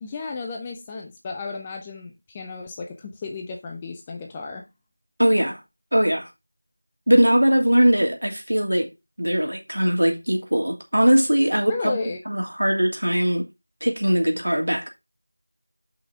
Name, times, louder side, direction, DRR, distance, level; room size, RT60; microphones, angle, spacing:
voice 1, 0.0-4.7 11.7-12.2, left 4 dB, 5° left, 0.4 m, -33 dB
voice 2, 5.2-5.6 5.9-6.3 7.1-8.9 9.2-12.0 12.3-13.4 13.8-14.9, equal, 65° right, 2.8 m, -20 dB
7.2 x 5.6 x 4.6 m
figure-of-eight pair, 175°, 0 cm